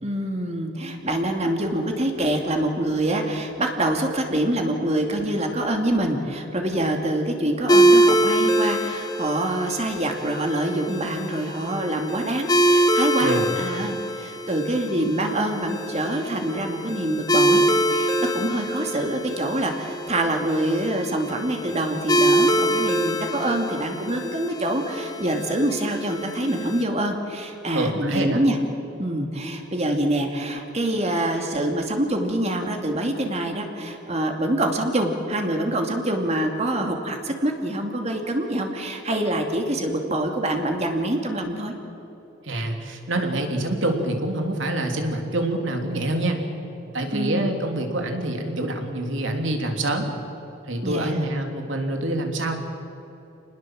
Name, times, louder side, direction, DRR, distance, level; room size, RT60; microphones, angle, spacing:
voice 1, 0.0-28.6 29.0-41.7 47.1-47.5 50.8-51.3, right 1 dB, 35° right, 3 dB, 2.5 m, -25 dB
sound 1, 7.7-26.8, right 1 dB, 20° left, 1.3 m, -24 dB
voice 2, 13.2-13.5 27.7-28.4 42.4-46.4 46.9-50.1 50.7-52.5, right 1 dB, 70° right, 3 dB, 3.3 m, -26 dB
28.0 x 20.0 x 7.7 m, 2.9 s
head